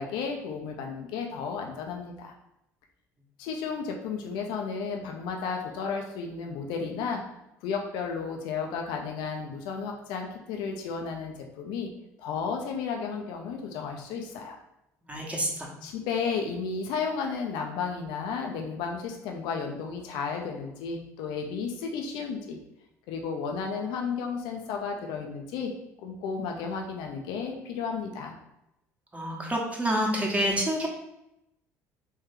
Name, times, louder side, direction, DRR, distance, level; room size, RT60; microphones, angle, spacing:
voice 1, 0.0-2.3 3.4-7.2 7.6-11.9 12.2-14.6 15.8-22.6 23.1-25.7 26.0-28.3, left 5 dB, 70° left, 2 dB, 0.6 m, -33 dB
voice 2, 15.1-15.7 29.1-30.9, equal, 15° right, -1 dB, 1.1 m, -27 dB
3.3 x 3.1 x 3.4 m, 0.87 s
hypercardioid pair, 65°, 8 cm